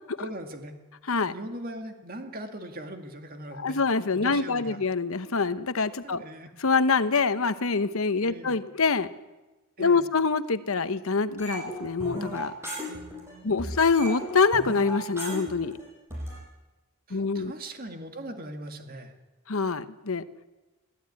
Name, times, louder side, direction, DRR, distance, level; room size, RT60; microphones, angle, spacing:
voice 1, 0.2-0.8 1.3-3.8 4.1-4.8 6.0-6.5 8.2-8.6 9.8-10.1 12.9-13.7 17.1-19.1, right 1 dB, 40° right, 5 dB, 2.2 m, -40 dB
voice 2, 3.6-6.2 6.6-9.1 9.8-12.5 13.4-15.8 17.1-17.5 19.5-20.2, left 4 dB, 70° left, 13 dB, 1.0 m, -25 dB
sound 1, 11.4-13.3 13.6-16.4, equal, 10° right, 7.7 m, -36 dB
22.0 x 14.5 x 9.7 m, 1.1 s
head